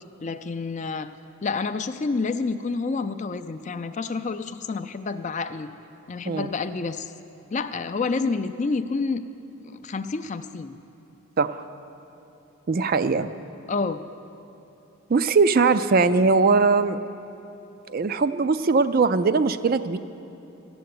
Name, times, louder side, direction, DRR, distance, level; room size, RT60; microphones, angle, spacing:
voice 1, 0.2-1.1 1.4-5.7 6.1-7.1 7.5-9.2 9.6-10.8 13.7-14.0, left 4 dB, 30° left, 10 dB, 0.4 m, -28 dB
voice 2, 12.7-13.3 15.1-17.0 17.9-20.0, right 4 dB, 40° right, 11 dB, 0.4 m, -20 dB
14.0 x 7.8 x 9.5 m, 2.9 s
head